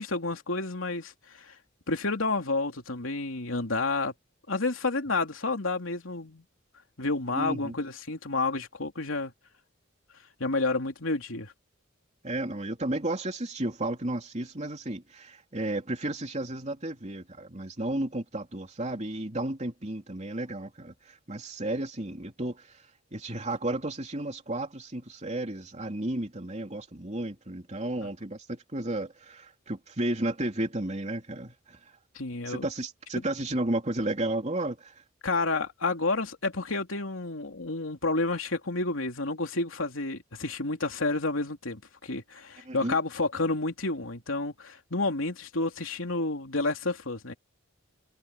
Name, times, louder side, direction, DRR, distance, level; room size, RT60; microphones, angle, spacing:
voice 1, 0.0-1.5 1.9-4.1 4.5-6.4 7.0-9.3 10.4-11.5 32.1-32.7 35.2-47.3, left 3 dB, 85° left, 3.1 m, -30 dB
voice 2, 7.3-7.8 12.2-22.8 23.1-31.8 32.5-34.9 42.6-43.0, right 1 dB, 35° right, 3.1 m, -33 dB
head